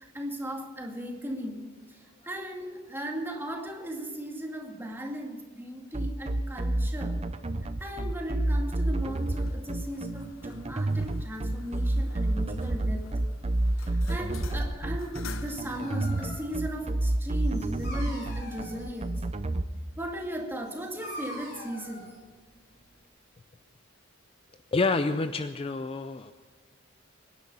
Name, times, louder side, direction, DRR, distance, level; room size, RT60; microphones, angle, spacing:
voice 1, 0.0-1.6 1.9-7.2 7.8-13.1 13.8-19.2 20.0-22.1, right 1 dB, 10° right, 1 dB, 2.3 m, -37 dB
sound 1, 5.9-19.6, right 1 dB, 30° right, 0.7 m, -29 dB
sound 2, 9.0-16.7, left 4 dB, 75° left, 0.9 m, -48 dB
Dog, 15.3-23.0, equal, 55° left, 4.7 m, -45 dB
voice 2, 24.7-26.3, left 3 dB, 30° left, 10 dB, 0.4 m, -28 dB
24.0 x 10.5 x 5.6 m, 1.4 s
head